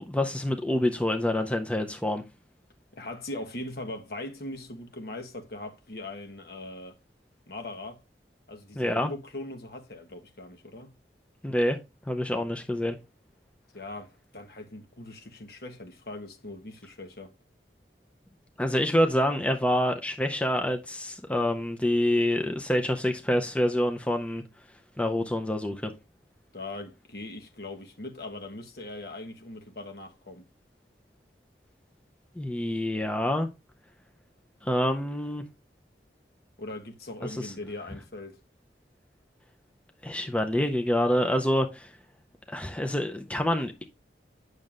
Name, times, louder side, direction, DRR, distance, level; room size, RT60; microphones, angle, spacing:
voice 1, 0.0-2.2 8.8-9.1 11.4-11.8 12.1-13.0 18.6-24.4 25.0-25.9 32.4-33.5 34.6-35.4 37.3-37.5 40.0-41.9 42.5-43.8, left 1 dB, 5° left, 0.5 m, -27 dB
voice 2, 2.9-7.0 7.5-8.0 8.5-10.9 13.7-17.3 26.5-30.4 36.6-38.4, left 2 dB, 60° left, 1.2 m, -40 dB
8.9 x 6.4 x 2.5 m
head